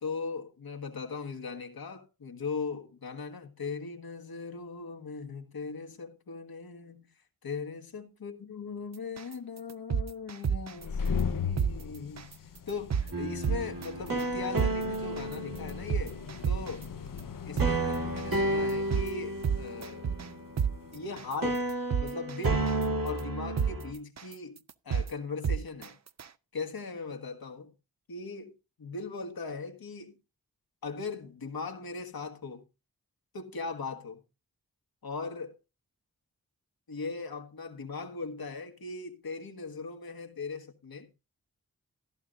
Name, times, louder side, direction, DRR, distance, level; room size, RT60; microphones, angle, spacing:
voice 1, 0.0-7.1 7.4-12.3 12.7-16.2 16.5-16.8 17.4-20.1 20.9-21.6 22.0-22.7 23.0-26.0 26.5-27.7 28.1-28.5 28.8-30.1 30.8-32.6 33.3-34.2 35.0-35.6 36.9-41.1, left 4 dB, 85° left, 1.5 m, -39 dB
sound 1, 9.2-9.3 9.7-10.8 11.2-11.3 11.6-11.7 12.2-12.3 12.7-13.1 13.4-13.9 14.2-14.3 14.6-14.7 15.2-15.3 15.7-16.8 17.2-17.3 17.6-17.7 18.2-18.3 18.7-19.1 19.4-20.3 20.6-20.7 21.2-21.3 21.7-22.8 23.2-23.3 23.6-23.7 24.2-24.3 24.7-25.1 25.4-25.9 26.2-26.3, right 7 dB, 50° right, 0.6 m, -28 dB
sound 2, 10.7-21.1, left 6 dB, 65° left, 0.7 m, -39 dB
sound 3, 13.1-16.3 17.6-21.1 21.4-23.9, right 1 dB, 70° right, 2.3 m, -32 dB
14.0 x 11.5 x 2.5 m
cardioid pair, 50°, 35 cm